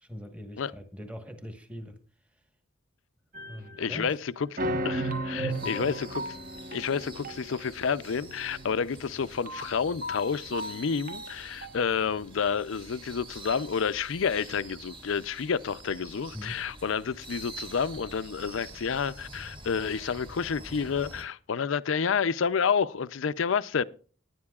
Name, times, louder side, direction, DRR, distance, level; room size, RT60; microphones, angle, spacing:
voice 1, 0.0-2.0 3.5-4.2 5.4-5.9 16.3-16.7, equal, 5° right, 1.2 m, -42 dB
sound 1, 3.3-4.1 4.6-12.0, right 1 dB, 45° right, 1.2 m, -35 dB
voice 2, 3.8-4.6 4.8-6.4 6.7-23.8, left 6 dB, 70° left, 0.5 m, -29 dB
sound 2, 5.5-21.3, right 2 dB, 25° right, 1.9 m, -47 dB
18.0 x 10.5 x 2.4 m
head